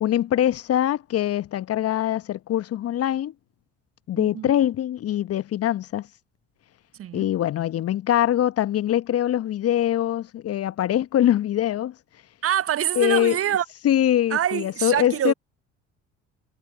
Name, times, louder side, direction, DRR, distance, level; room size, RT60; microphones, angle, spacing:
voice 1, 0.0-3.3 4.1-6.1 7.1-11.9 13.0-13.4 13.8-15.3, left 11 dB, 40° left, 1.1 m, -23 dB
voice 2, 4.1-4.5 7.0-7.3 12.4-13.6 14.3-15.3, right 10 dB, 40° right, 1.1 m, -25 dB
figure-of-eight pair, 55°, 36 cm